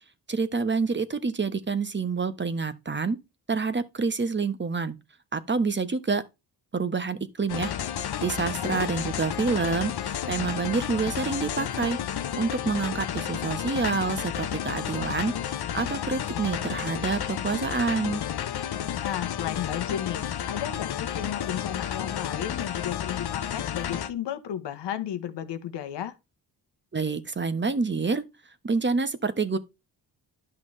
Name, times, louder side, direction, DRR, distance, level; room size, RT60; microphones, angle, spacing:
voice 1, 0.3-3.2 3.5-5.0 5.3-6.2 6.7-12.0 12.3-18.2 26.9-28.2 28.6-29.6, right 4 dB, 30° right, 1.1 m, -28 dB
sound 1, 7.5-24.1, left 10 dB, 65° left, 0.9 m, -31 dB
voice 2, 19.0-26.1, left 10 dB, 90° left, 1.2 m, -34 dB
11.0 x 5.9 x 3.2 m
cardioid pair, 70°, 41 cm